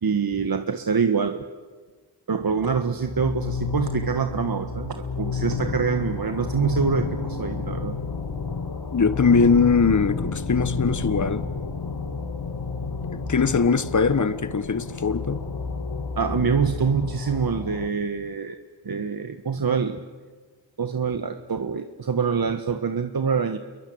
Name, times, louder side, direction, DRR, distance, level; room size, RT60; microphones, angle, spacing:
voice 1, 0.0-1.5 2.3-8.0 16.1-18.6 18.8-20.0 20.8-23.6, right 6 dB, 50° right, 1.6 m, -25 dB
sound 1, 2.6-17.9, left 4 dB, 55° left, 2.9 m, -30 dB
voice 2, 8.9-11.4 13.1-15.4, left 5 dB, 40° left, 1.6 m, -21 dB
28.5 x 23.0 x 8.9 m
cardioid pair, 50°, 46 cm